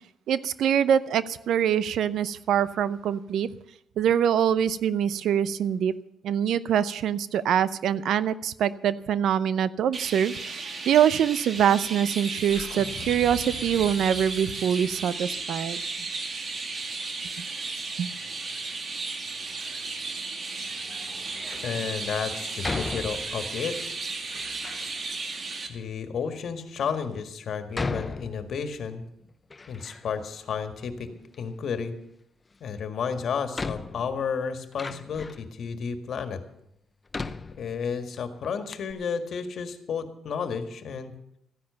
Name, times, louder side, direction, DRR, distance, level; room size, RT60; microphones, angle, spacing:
voice 1, 0.3-3.5 4.0-5.9 6.2-15.8 17.4-17.5 18.0-18.1, right 9 dB, 75° right, 16 dB, 0.7 m, -24 dB
Chirp tweet, 9.9-25.7, right 3 dB, 45° right, 2.1 m, -34 dB
sound 1, 12.4-16.7, left 6 dB, 85° left, 1.3 m, -44 dB
Door, 21.3-21.7 22.6-23.6 24.3-24.9 25.7-25.8 26.5-26.6 27.7-28.9 29.2-30.3 30.6-31.4 32.8-32.9 33.5-35.5 36.2-36.3 37.1-38.2 38.4-38.5 38.7-38.9, left 3 dB, 25° left, 0.7 m, -36 dB
voice 2, 21.6-23.8 25.7-29.0 29.7-31.1 31.4-31.9 32.6-36.4 37.6-41.1, left 6 dB, 60° left, 8 dB, 1.8 m, -32 dB
14.5 x 10.5 x 6.9 m, 0.77 s
cardioid pair, 90°, 0 cm